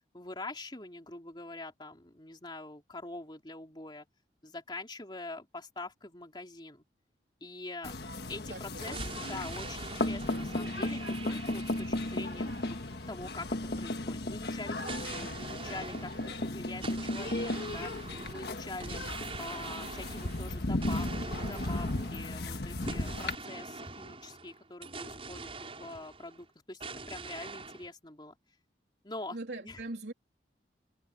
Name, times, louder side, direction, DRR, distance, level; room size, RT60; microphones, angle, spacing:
voice 1, 0.1-4.1 4.4-6.8 7.4-7.9 8.3-12.8 13.1-19.0 19.4-28.4 29.0-29.4 29.6-29.8, left 2 dB, 25° left, 3.4 m, -44 dB
sound 1, 7.8-23.3, left 2 dB, 65° left, 1.5 m, -35 dB
voice 2, 8.5-9.0 29.3-30.1, right 2 dB, 75° right, 3.5 m, -41 dB
sound 2, 8.8-13.5 14.8-26.5 26.8-27.9, right 4 dB, 35° right, 6.6 m, -44 dB
head